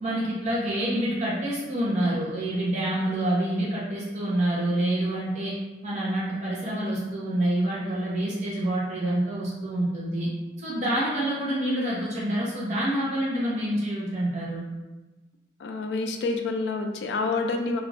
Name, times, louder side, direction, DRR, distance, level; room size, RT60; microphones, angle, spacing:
voice 1, 0.0-5.6 5.8-10.3 10.6-14.6, right 1 dB, 40° right, -6 dB, 0.7 m, -27 dB
voice 2, 15.6-17.8, left 3 dB, 75° left, 4 dB, 0.3 m, -28 dB
2.4 x 2.4 x 3.2 m, 1.1 s
head